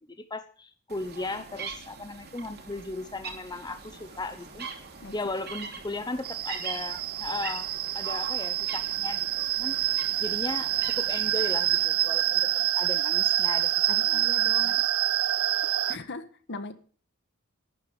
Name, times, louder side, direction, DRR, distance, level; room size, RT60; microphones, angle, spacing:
voice 1, 0.1-4.7 5.1-7.7 7.9-9.8 10.2-12.5 12.7-13.7 14.1-14.2 14.6-14.8, left 2 dB, 20° left, 9 dB, 0.8 m, -36 dB
sound 1, 0.9-11.8, right 5 dB, 50° right, 2.8 m, -42 dB
sound 2, 3.5-12.7, right 2 dB, 25° right, 2.6 m, -56 dB
sound 3, 6.2-16.0, right 14 dB, 70° right, 0.5 m, -27 dB
voice 2, 13.9-14.7 15.9-16.7, left 3 dB, 55° left, 11 dB, 1.5 m, -39 dB
12.0 x 10.0 x 7.1 m, 0.44 s
head